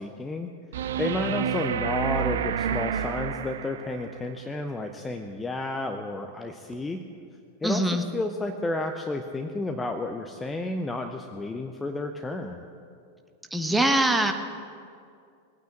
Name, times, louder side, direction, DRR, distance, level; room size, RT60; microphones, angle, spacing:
voice 1, 0.0-7.0 7.6-12.7, left 2 dB, 10° left, 5 dB, 0.8 m, -31 dB
sound 1, 0.7-4.1 6.7-6.8, right 9 dB, 60° right, 0.7 m, -29 dB
voice 2, 7.6-8.0 13.5-14.3, right 1 dB, 5° right, 4 dB, 1.3 m, -23 dB
20.0 x 9.3 x 7.5 m, 2.3 s
figure-of-eight pair, 90°, 0 cm